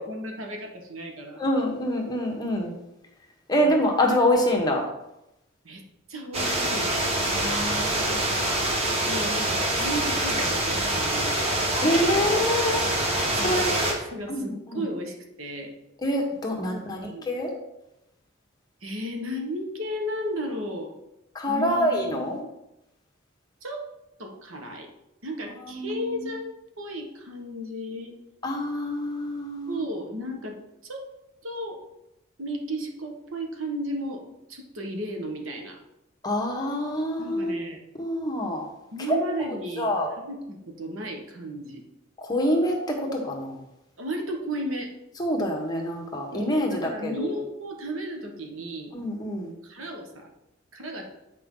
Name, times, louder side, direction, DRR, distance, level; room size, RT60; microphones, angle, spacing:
voice 1, 0.0-1.4 3.6-3.8 5.6-5.8 6.1-6.9 9.1-11.5 13.3-15.7 16.7-17.3 18.8-20.9 21.4-22.3 23.6-23.9 24.2-24.9 25.2-28.1 29.7-30.6 30.8-31.1 31.4-31.8 32.4-35.8 37.2-37.8 38.9-41.8 44.0-44.9 46.3-48.9 49.4-50.3 50.7-51.1, equal, 90° right, 2 dB, 1.4 m, -34 dB
voice 2, 1.4-2.7 3.5-4.8 7.3-8.1 11.8-12.9 13.4-13.7 14.3-14.8 16.0-17.5 21.3-22.4 25.7-26.4 28.4-29.8 36.2-37.6 38.0-38.7 39.1-39.2 39.8-40.1 42.2-43.6 45.2-47.3 48.9-49.5, equal, 20° left, 0 dB, 1.2 m, -26 dB
sound 1, 6.3-13.9, right 1 dB, 30° right, 1.4 m, -25 dB
8.6 x 4.9 x 3.8 m, 0.90 s
head